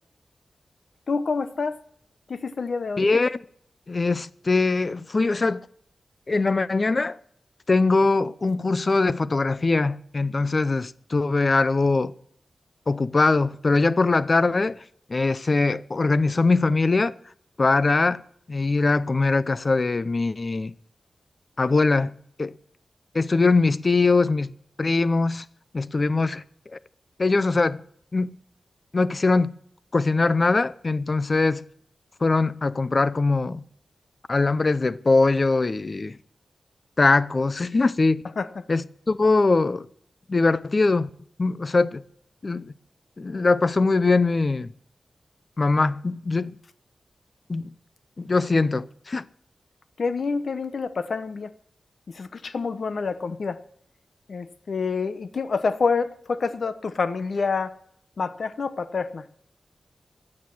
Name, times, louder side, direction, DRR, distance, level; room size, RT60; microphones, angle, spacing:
voice 1, 1.1-1.8 2.3-3.0 38.4-38.6 50.0-51.5 52.1-53.6 54.3-57.7 58.2-59.2, left 4 dB, 65° left, 0.9 m, -27 dB
voice 2, 3.0-3.4 3.9-5.7 6.3-7.2 7.7-12.1 12.9-14.8 15.1-17.2 17.6-18.2 18.5-20.7 21.6-22.1 22.4-22.5 23.1-25.4 25.7-26.4 26.7-26.8 27.2-27.8 28.1-28.3 28.9-29.5 29.9-31.6 32.2-33.6 34.3-36.2 37.0-38.2 38.7-39.9 40.3-41.1 41.4-42.0 42.4-42.7 43.2-44.7 45.6-46.6 47.5-47.7 48.2-49.2, left 3 dB, 40° left, 0.5 m, -22 dB
15.0 x 9.7 x 6.0 m
wide cardioid pair, 105°, 0 cm